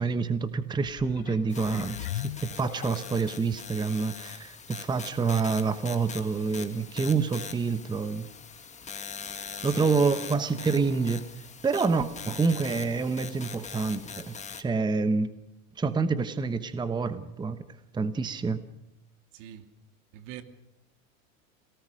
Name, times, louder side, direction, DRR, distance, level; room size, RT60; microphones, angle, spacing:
voice 1, 0.0-8.3 9.0-9.1 9.6-11.3 11.6-15.3 15.8-17.6 17.9-18.6, right 4 dB, 10° right, 1.0 m, -27 dB
sound 1, 0.7-3.4 4.0-4.1, left 15 dB, 85° left, 0.9 m, -39 dB
sound 2, 1.5-14.6, left 6 dB, 15° left, 1.8 m, -42 dB
voice 2, 9.6-10.0 19.3-19.7 20.1-20.4, right 10 dB, 65° right, 2.5 m, -43 dB
28.5 x 18.5 x 6.4 m
supercardioid pair, 125°, 41 cm